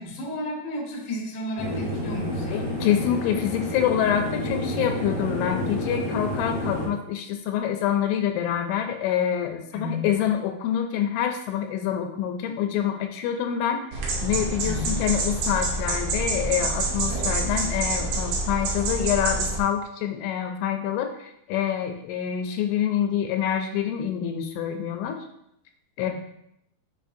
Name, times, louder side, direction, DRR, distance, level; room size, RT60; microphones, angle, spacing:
voice 1, 0.0-2.7 9.7-10.1 14.6-15.0, left 1 dB, 55° left, -3 dB, 1.5 m, -33 dB
sound 1, 1.6-6.9, left 1 dB, 35° right, 2.8 m, -29 dB
voice 2, 2.5-13.8 14.2-25.2 26.0-26.1, left 9 dB, 80° left, 5 dB, 2.9 m, -26 dB
sound 2, 13.9-19.6, right 2 dB, 70° right, 2.4 m, -27 dB
9.1 x 4.8 x 2.7 m, 0.76 s
omnidirectional pair, 5.5 m